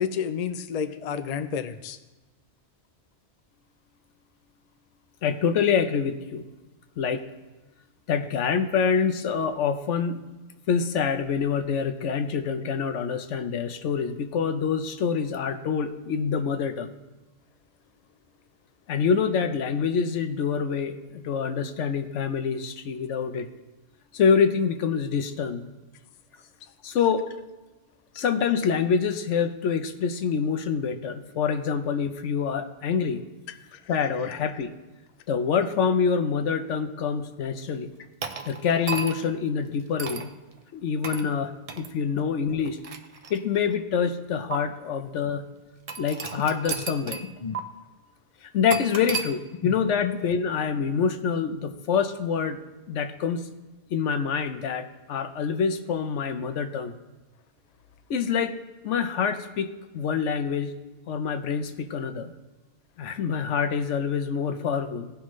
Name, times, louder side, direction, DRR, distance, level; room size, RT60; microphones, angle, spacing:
voice 1, 0.0-2.0 47.4-47.6 49.6-49.7 50.0-50.1, left 7 dB, 55° left, 10 dB, 0.4 m, -30 dB
voice 2, 5.2-6.4 7.0-7.2 8.1-10.2 10.7-16.9 18.9-23.5 24.1-25.7 26.8-27.3 28.1-33.2 33.9-34.7 35.3-37.9 38.4-40.3 40.7-42.8 43.3-45.5 46.0-47.2 48.4-53.5 53.9-56.9 58.1-58.5 58.8-59.7 59.9-60.7 61.1-62.3 63.0-65.1, left 6 dB, 80° left, 9 dB, 1.0 m, -26 dB
sound 1, 38.2-39.3 40.0-40.3 41.0-41.3 41.7-41.9 42.6-43.7 44.5-44.6 45.9-47.3 47.5-47.6 48.7-49.3, right 5 dB, 40° right, 0.5 m, -33 dB
17.0 x 5.8 x 3.1 m, 1.2 s
omnidirectional pair, 1.2 m